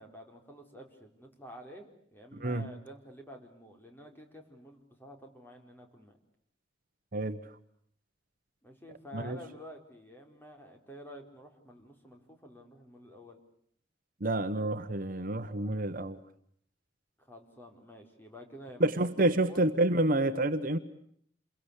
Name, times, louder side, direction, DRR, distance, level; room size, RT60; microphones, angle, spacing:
voice 1, 0.0-6.2 8.6-13.4 17.2-19.6, equal, 10° left, 3 dB, 4.3 m, -50 dB
voice 2, 2.3-2.7 7.1-7.4 9.1-9.4 14.2-16.2 18.8-20.8, right 2 dB, 50° right, 9 dB, 1.2 m, -28 dB
28.5 x 22.5 x 8.3 m, 0.66 s
head